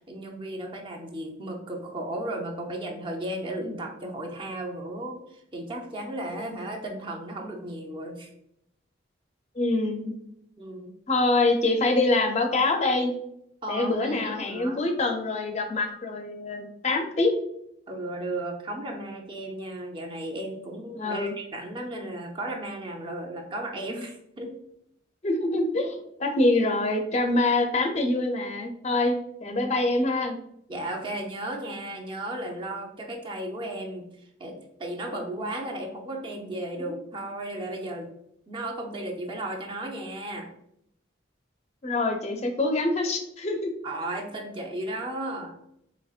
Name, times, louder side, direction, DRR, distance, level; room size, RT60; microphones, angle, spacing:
voice 1, 0.1-8.3 10.6-10.9 13.6-14.8 17.9-24.6 29.4-29.7 30.7-34.1 34.4-38.1 38.5-40.5 43.8-45.5, right 1 dB, 25° right, 0 dB, 0.5 m, -35 dB
voice 2, 9.6-10.1 11.1-13.1 13.7-17.3 21.0-21.3 25.2-30.4 41.8-43.7, left 2 dB, 35° left, 5 dB, 0.5 m, -25 dB
4.2 x 2.8 x 2.4 m, 0.74 s
head